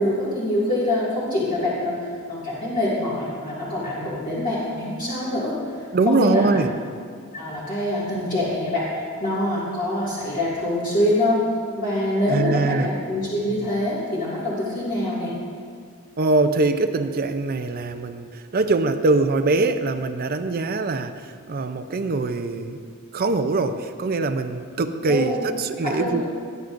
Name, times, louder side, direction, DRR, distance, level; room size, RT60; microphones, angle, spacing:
voice 1, 0.0-5.5 6.1-6.6 7.3-11.4 11.8-15.3 25.1-25.4 25.8-26.2, left 1 dB, 40° left, -9 dB, 2.1 m, -25 dB
voice 2, 5.9-6.7 12.3-12.9 16.2-22.8 23.1-26.2, right 3 dB, 45° right, 9 dB, 0.5 m, -23 dB
18.5 x 9.5 x 2.6 m, 2.1 s
head